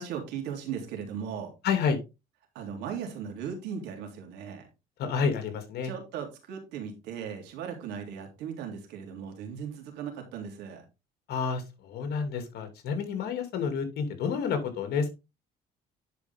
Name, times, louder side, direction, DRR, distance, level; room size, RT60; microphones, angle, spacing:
voice 1, 0.0-1.5 2.5-4.7 5.8-10.8, right 7 dB, 90° right, 3 dB, 3.2 m, -37 dB
voice 2, 1.6-2.0 5.0-5.9 11.3-15.1, left 6 dB, 70° left, 7 dB, 2.6 m, -29 dB
10.5 x 5.3 x 3.6 m, 0.26 s
cardioid pair, 110°, 17 cm